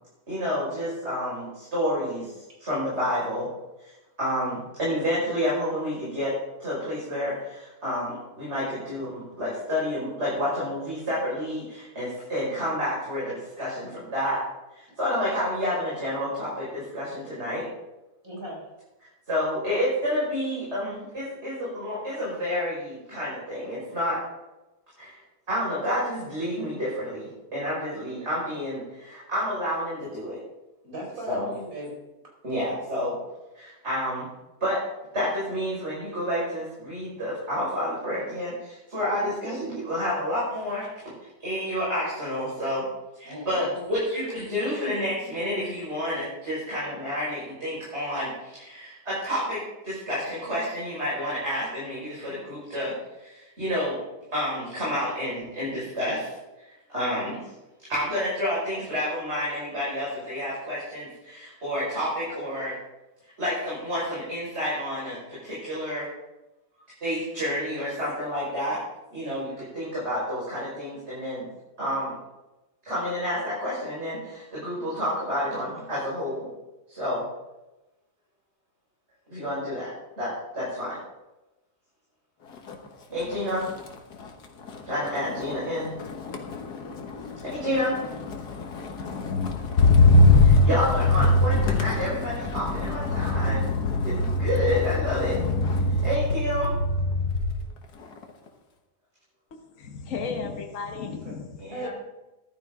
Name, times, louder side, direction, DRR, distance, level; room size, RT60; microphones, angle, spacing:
voice 1, 0.3-2.3 2.6-3.5 4.2-6.3 6.6-14.4 14.7-17.7 19.3-24.2 25.0-25.2 25.5-30.4 31.3-31.5 32.4-33.2 33.5-34.3 34.6-34.8 35.1-40.9 41.4-42.8 43.2-54.0 54.3-56.3 56.9-57.4 57.9-62.7 63.4-66.1 67.0-68.8 69.1-71.4 71.8-72.1 72.8-76.5 76.9-77.2 79.3-79.9 80.2-81.0 83.1-83.7 84.9-85.9 87.4-88.0 90.4-93.7 94.0-95.4 95.9-96.7 101.6-101.9, equal, 45° right, -8 dB, 5.7 m, -29 dB
voice 2, 18.2-18.7 30.8-32.0 43.2-43.9 101.1-101.4 101.7-101.9, right 1 dB, 60° right, -2 dB, 5.6 m, -38 dB
Motor vehicle (road), 82.5-82.9 83.2-97.6 98.0-98.5, left 2 dB, 90° left, 1.9 m, -23 dB
voice 3, 99.7-101.9, left 5 dB, 55° left, 3 dB, 1.4 m, -34 dB
14.5 x 12.0 x 3.8 m, 1.0 s
omnidirectional pair, 1.7 m